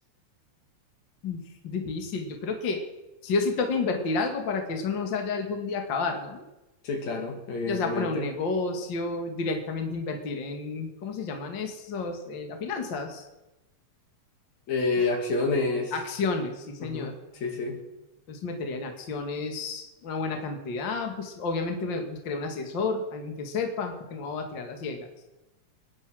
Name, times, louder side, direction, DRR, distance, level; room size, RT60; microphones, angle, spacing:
voice 1, 1.2-2.8 3.2-6.4 7.7-13.3 15.9-17.1 18.3-25.1, left 4 dB, 45° left, 4 dB, 2.3 m, -31 dB
voice 2, 6.8-8.3 14.7-15.9 16.8-17.8, left 3 dB, 70° left, 3 dB, 3.4 m, -28 dB
23.0 x 9.9 x 6.3 m, 1.0 s
omnidirectional pair, 3.4 m